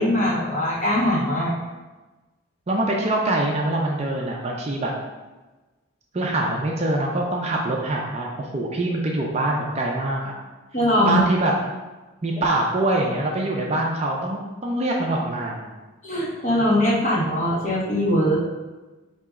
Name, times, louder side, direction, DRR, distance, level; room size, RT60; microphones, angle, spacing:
voice 1, 0.0-1.5 10.7-11.2 16.0-18.4, left 1 dB, 35° left, -7 dB, 1.3 m, -21 dB
voice 2, 2.7-4.9 6.1-10.3 11.0-11.5 12.2-15.7, right 2 dB, 30° right, -1 dB, 0.4 m, -24 dB
4.2 x 2.9 x 3.6 m, 1.2 s
head